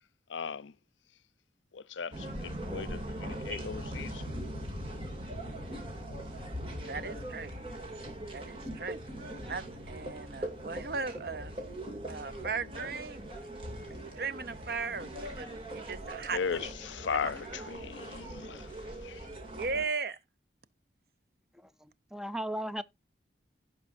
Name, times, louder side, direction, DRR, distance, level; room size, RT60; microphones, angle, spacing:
voice 1, 0.3-0.7 1.7-4.2 16.3-19.3, left 6 dB, 90° left, 0.6 m, -37 dB
sound 1, 2.1-19.8, right 1 dB, 30° right, 2.5 m, -41 dB
voice 2, 6.9-7.5 8.3-9.0 9.5-11.6 12.1-13.2 13.9-16.7 17.1-17.3 19.5-20.2, right 4 dB, 55° right, 0.7 m, -37 dB
voice 3, 21.5-22.8, right 1 dB, 5° right, 0.4 m, -37 dB
16.0 x 5.4 x 2.5 m
head